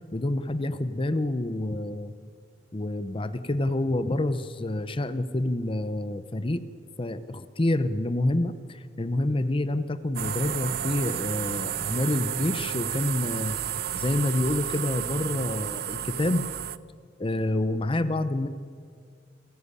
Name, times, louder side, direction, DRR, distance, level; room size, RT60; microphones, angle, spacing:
voice 1, 0.1-2.1 2.7-6.6 7.0-13.6 13.9-16.5 17.2-18.5, left 1 dB, 30° left, 13 dB, 0.7 m, -28 dB
sound 1, 10.1-16.8, right 10 dB, 55° right, 0.6 m, -32 dB
29.0 x 10.5 x 9.7 m, 2.1 s
head